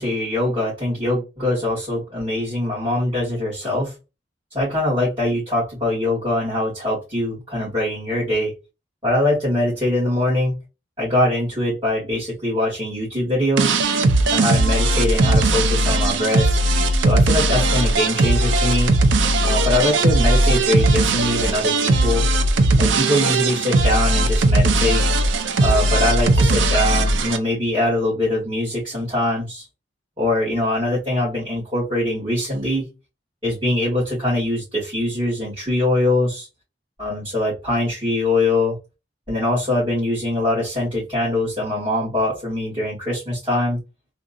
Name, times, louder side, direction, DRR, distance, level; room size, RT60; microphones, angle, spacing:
voice 1, 0.0-3.9 4.5-8.5 9.0-10.6 11.0-13.8 14.3-16.5 17.0-18.9 19.4-22.2 22.8-25.0 25.6-29.6 30.2-32.8 33.4-36.5 37.0-38.8 39.3-43.8, left 1 dB, 25° right, -9 dB, 2.0 m, -22 dB
sound 1, 13.6-27.4, right 2 dB, 80° right, 0.5 m, -18 dB
3.5 x 2.6 x 2.5 m, 0.27 s
head